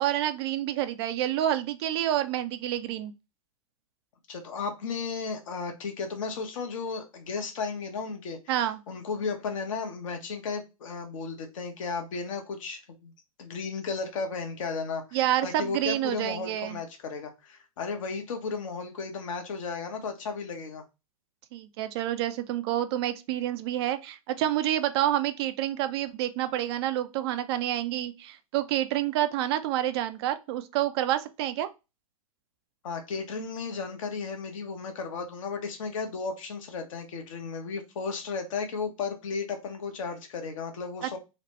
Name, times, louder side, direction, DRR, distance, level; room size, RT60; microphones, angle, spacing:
voice 1, 0.0-3.1 8.5-8.8 15.1-16.8 21.5-31.7 41.0-41.2, right 12 dB, 45° right, 0.4 m, -28 dB
voice 2, 4.3-8.4 8.9-13.1 13.4-20.8 32.8-41.2, left 4 dB, 60° left, 0.9 m, -34 dB
3.1 x 2.1 x 2.9 m
figure-of-eight pair, 105°, 19 cm